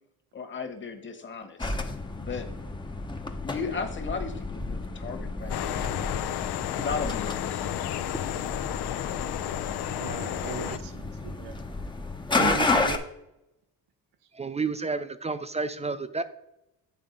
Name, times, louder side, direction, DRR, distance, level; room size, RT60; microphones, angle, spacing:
voice 1, 0.3-1.7 2.2-2.5 3.4-6.3 6.8-8.0, left 5 dB, 30° left, 4 dB, 1.3 m, -36 dB
sound 1, 1.6-13.0, left 3 dB, 10° left, 0.7 m, -32 dB
sound 2, 5.5-10.8, left 12 dB, 75° left, 0.5 m, -32 dB
voice 2, 9.9-11.6 12.3-13.0, right 8 dB, 85° right, 8 dB, 0.7 m, -36 dB
voice 3, 14.3-16.2, right 4 dB, 20° right, 12 dB, 0.4 m, -31 dB
8.9 x 3.6 x 5.2 m, 0.87 s
cardioid pair, 85°, 40 cm